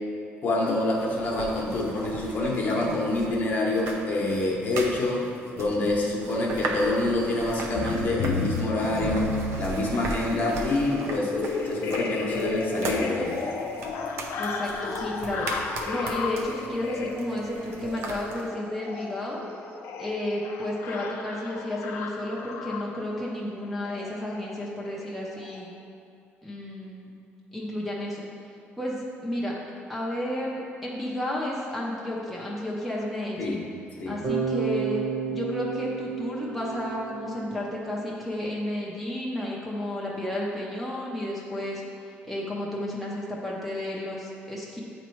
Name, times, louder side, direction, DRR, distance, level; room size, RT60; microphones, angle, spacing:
voice 1, 0.4-5.2 5.5-9.3 9.6-13.4 33.4-33.6 34.0-34.2, left 2 dB, 40° left, -2 dB, 0.9 m, -26 dB
sound 1, 0.7-18.5, right 2 dB, 70° right, 0.7 m, -38 dB
sound 2, 7.8-23.1 23.9-24.1 24.4-24.6 24.9-25.1 25.4-25.6, left 4 dB, 85° left, 0.5 m, -33 dB
voice 2, 14.4-15.5 15.8-19.4 20.0-25.7 26.4-27.1 27.5-28.2 28.8-29.5 29.9-33.6 34.1-35.0 35.3-41.8 42.3-44.8, left 1 dB, ahead, -5 dB, 0.6 m, -32 dB
Bass guitar, 34.2-38.2, right 6 dB, 30° right, 1.0 m, -31 dB
8.0 x 3.1 x 4.5 m, 2.5 s
cardioid pair, 155°, 5 cm